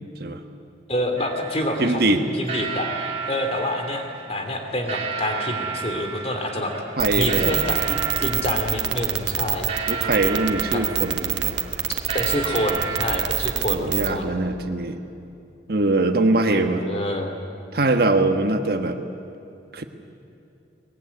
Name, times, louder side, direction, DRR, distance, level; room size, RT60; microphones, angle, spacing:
voice 1, 0.9-2.9 3.3-4.0 4.3-6.7 7.1-9.7 10.7-10.8 12.1-14.3 16.5-17.4, left 1 dB, 35° left, 4 dB, 2.9 m, -27 dB
sound 1, 1.2-13.2, right 5 dB, 35° right, 3.0 m, -33 dB
voice 2, 1.8-2.2 7.0-7.6 9.9-11.6 13.7-15.0 15.7-16.8 17.7-19.0 19.7-19.8, right 2 dB, 55° right, 7 dB, 1.3 m, -22 dB
sound 2, 7.0-14.1, right 11 dB, 80° right, 1.5 m, -24 dB
22.5 x 20.5 x 9.7 m, 2.7 s
head